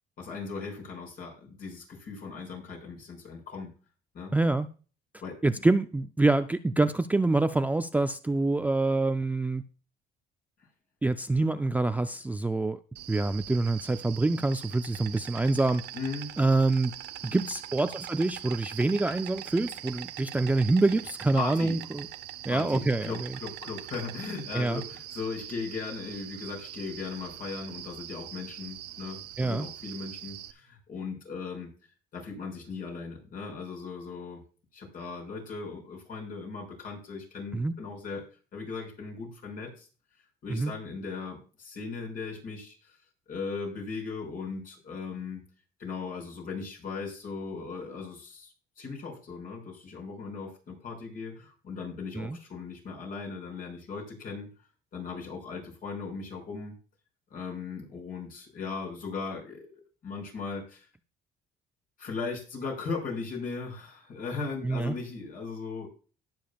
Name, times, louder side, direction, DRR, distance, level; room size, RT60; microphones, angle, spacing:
voice 1, 0.2-3.7 4.1-4.3 5.2-5.4 15.9-16.4 21.4-21.9 22.5-31.7 32.1-34.4 34.7-38.3 38.5-39.9 40.4-43.0 43.3-45.4 45.8-54.5 54.9-56.7 57.3-59.7 60.0-60.9 62.0-65.9, left 4 dB, 55° left, 5.8 m, -38 dB
voice 2, 4.3-4.7 5.4-9.6 11.0-12.8 13.1-15.8 16.4-16.9 17.2-22.1 22.4-23.3 24.5-24.8 29.4-29.7 37.5-37.8 40.5-40.7 52.2-52.4 64.6-65.0, right 2 dB, 10° right, 0.4 m, -26 dB
Insect, 13.0-30.5, right 12 dB, 75° right, 0.7 m, -42 dB
18.0 x 7.1 x 2.3 m
cardioid pair, 110°, 17 cm